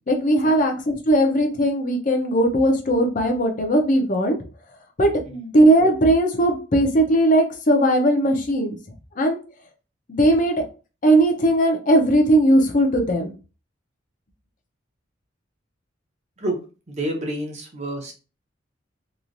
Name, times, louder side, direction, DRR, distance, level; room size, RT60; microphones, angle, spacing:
voice 1, 0.1-4.4 5.0-8.8 9.2-9.4 10.1-10.6 11.0-13.3, right 1 dB, 45° left, 3 dB, 0.6 m, -18 dB
voice 2, 16.9-18.1, right 1 dB, 35° right, 1 dB, 0.8 m, -28 dB
3.0 x 2.4 x 2.5 m, 0.34 s
head